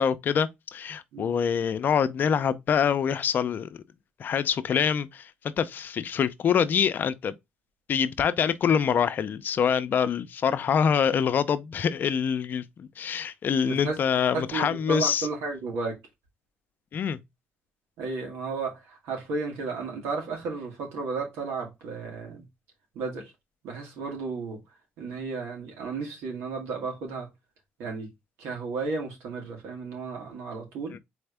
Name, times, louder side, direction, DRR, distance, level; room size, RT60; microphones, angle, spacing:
voice 1, 0.0-3.7 4.2-5.3 5.6-7.3 7.9-15.3 16.9-17.2 30.9-31.0, left 7 dB, 50° left, 0.6 m, -25 dB
voice 2, 13.6-13.9 14.3-15.9 18.0-22.4 22.9-23.3 23.6-24.6 25.0-27.3 27.8-28.1 28.4-31.0, right 4 dB, 85° right, 2.2 m, -33 dB
4.3 x 3.5 x 3.4 m
cardioid pair, 95°, 4 cm